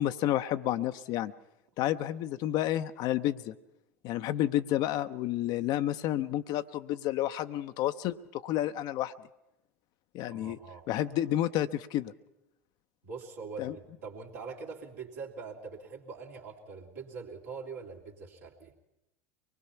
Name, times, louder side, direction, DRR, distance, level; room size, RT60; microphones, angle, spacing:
voice 1, 0.0-1.3 1.8-3.5 4.0-9.1 10.1-10.6 10.9-12.1 13.6-13.8, left 13 dB, 55° left, 10 dB, 0.6 m, -30 dB
voice 2, 10.2-10.9 13.0-18.7, right 5 dB, 75° right, -3 dB, 2.7 m, -43 dB
24.0 x 20.0 x 5.7 m, 0.91 s
hypercardioid pair, 80°, 9 cm